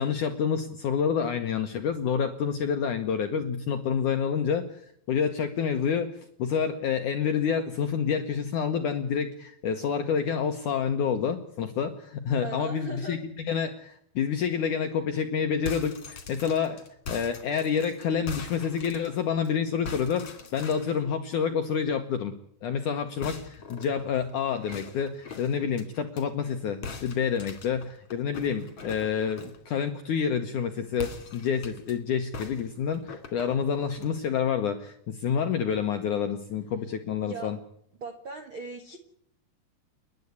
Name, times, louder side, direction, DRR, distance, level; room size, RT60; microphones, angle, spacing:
voice 1, 0.0-6.1 6.4-16.8 17.1-20.2 20.5-22.3 22.6-37.6, left 7 dB, 70° left, 6 dB, 2.0 m, -28 dB
voice 2, 12.4-13.2 37.2-37.5 38.0-39.0, right 4 dB, 60° right, 5 dB, 1.3 m, -38 dB
sound 1, 15.5-19.5 19.9-21.0 23.2-26.2 26.8-29.7 30.9-31.9 32.3-34.1, left 5 dB, 40° left, 3.0 m, -42 dB
30.0 x 11.0 x 9.7 m, 0.71 s
omnidirectional pair, 5.0 m